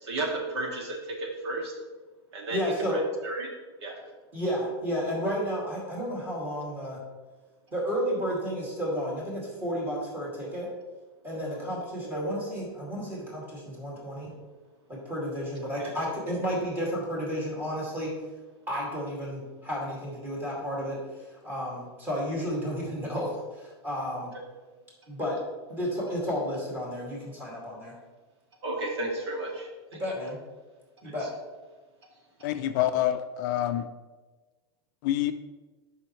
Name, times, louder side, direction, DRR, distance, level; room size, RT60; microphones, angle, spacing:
voice 1, 0.0-1.7 2.3-2.6 2.9-3.5 3.8-4.0 11.3-11.7 12.0-12.2 15.8-15.9 28.6-30.0, right 2 dB, 80° right, 0 dB, 2.1 m, -33 dB
voice 2, 2.5-3.0 4.3-7.0 7.7-10.7 11.2-14.3 14.9-18.1 18.7-24.3 25.1-25.4 25.7-27.9 29.9-30.4 31.0-31.3, equal, 15° right, -5 dB, 2.3 m, -32 dB
voice 3, 32.4-33.9 35.0-35.3, left 12 dB, 45° left, 9 dB, 0.4 m, -26 dB
10.5 x 5.6 x 3.1 m, 1.3 s
supercardioid pair, 165°, 14 cm